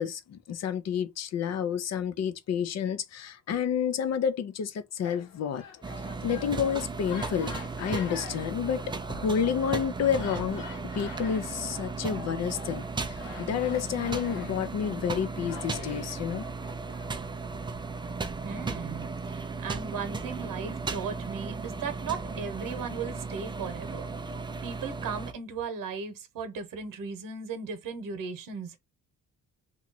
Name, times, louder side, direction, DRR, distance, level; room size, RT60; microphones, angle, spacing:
voice 1, 0.0-5.6 6.2-10.6 10.9-16.4, left 8 dB, 55° left, 0.5 m, -30 dB
sound 1, 5.0-17.1, left 6 dB, 80° left, 1.1 m, -46 dB
sound 2, 5.8-25.3, right 4 dB, 15° right, 0.3 m, -36 dB
voice 2, 18.4-24.1 24.6-28.8, right 5 dB, 85° right, 0.9 m, -37 dB
3.0 x 2.3 x 3.8 m
cardioid pair, 150°, 33 cm